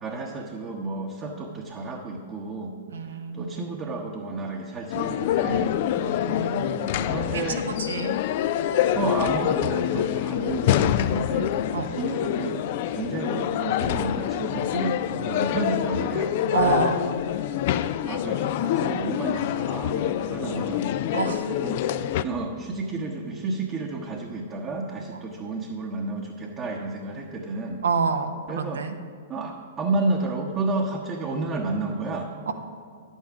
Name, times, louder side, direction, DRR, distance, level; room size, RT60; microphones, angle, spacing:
voice 1, 0.0-2.8 3.3-5.7 7.0-7.6 9.0-11.5 11.9-12.6 12.9-15.0 15.2-16.3 18.0-20.9 21.5-27.8 28.5-28.8 29.3-32.3, right 3 dB, 30° right, 0 dB, 1.0 m, -31 dB
voice 2, 2.9-3.5 6.0-7.1 7.3-7.4 7.8-8.2 11.7-11.9 16.5-17.1 21.1-21.5 27.8-28.9 32.5-32.6, right 5 dB, 75° right, 7 dB, 0.8 m, -28 dB
sound 1, 4.9-22.2, left 11 dB, 50° left, 0.4 m, -26 dB
10.5 x 8.3 x 4.8 m, 2.2 s
figure-of-eight pair, 105°, 0 cm